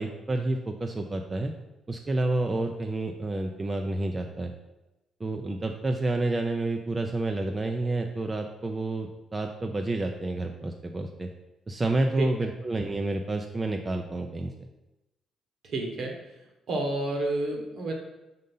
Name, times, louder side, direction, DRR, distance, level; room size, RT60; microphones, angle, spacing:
voice 1, 0.0-1.5 1.9-4.5 5.2-11.3 11.7-14.5, right 2 dB, 25° right, 3 dB, 0.5 m, -29 dB
voice 2, 12.2-12.5 15.6-16.2 16.7-17.9, right 2 dB, 65° right, 2 dB, 1.4 m, -30 dB
5.3 x 4.0 x 5.4 m, 0.99 s
cardioid pair, 90°, 0 cm